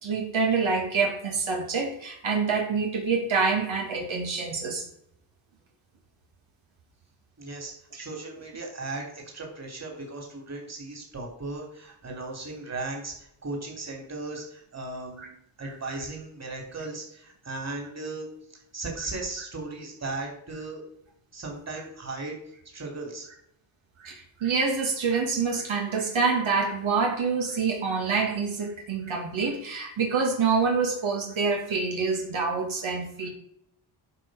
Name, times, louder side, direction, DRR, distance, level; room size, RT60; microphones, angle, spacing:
voice 1, 0.0-4.8 15.2-15.3 15.6-15.7 24.0-33.3, right 4 dB, 70° right, 0 dB, 2.5 m, -26 dB
voice 2, 7.4-15.3 15.6-20.8 21.3-22.4 22.7-23.3, right 2 dB, 30° right, 1 dB, 3.3 m, -37 dB
11.0 x 5.4 x 5.0 m, 0.71 s
cardioid pair, 100°, 49 cm